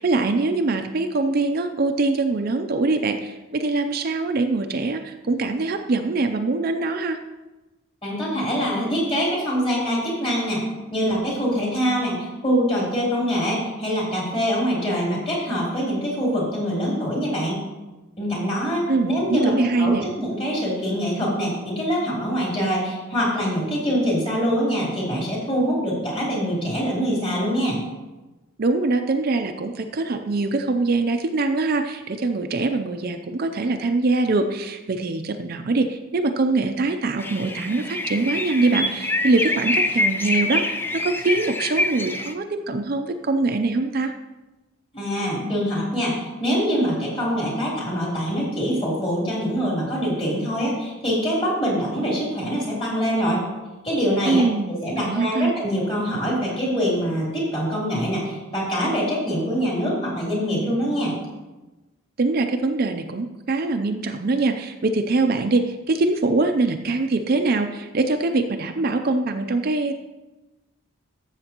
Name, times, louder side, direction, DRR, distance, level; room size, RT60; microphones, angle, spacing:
voice 1, 0.0-7.2 18.9-20.1 28.6-44.1 54.3-55.5 62.2-69.9, right 3 dB, 45° right, 6 dB, 0.5 m, -23 dB
voice 2, 8.0-10.6 10.9-17.6 18.2-27.8 44.9-53.4 53.8-54.4 54.7-61.1, equal, 25° left, -5 dB, 3.4 m, -24 dB
sound 1, 37.2-42.3, left 1 dB, 10° left, 0.4 m, -25 dB
13.0 x 7.4 x 3.0 m, 1.1 s
head